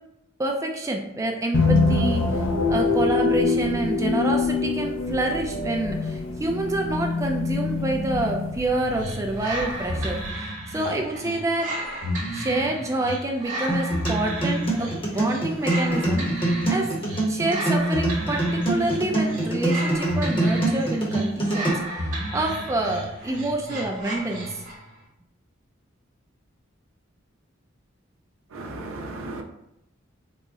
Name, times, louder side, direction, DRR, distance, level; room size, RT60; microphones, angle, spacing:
voice 1, 0.4-2.3 2.7-11.8 12.3-16.9 17.3-21.8 22.3-24.6, right 2 dB, 15° right, 2 dB, 0.3 m, -27 dB
sound 1, 1.5-10.3, left 3 dB, 65° left, 0.6 m, -25 dB
sound 2, 8.9-24.9, equal, 40° right, 0.9 m, -32 dB
sound 3, 13.7-21.7, right 2 dB, 25° left, 0.8 m, -25 dB
voice 2, 28.5-29.4, right 2 dB, 85° right, 2 dB, 0.6 m, -35 dB
3.8 x 2.0 x 3.5 m, 0.84 s
head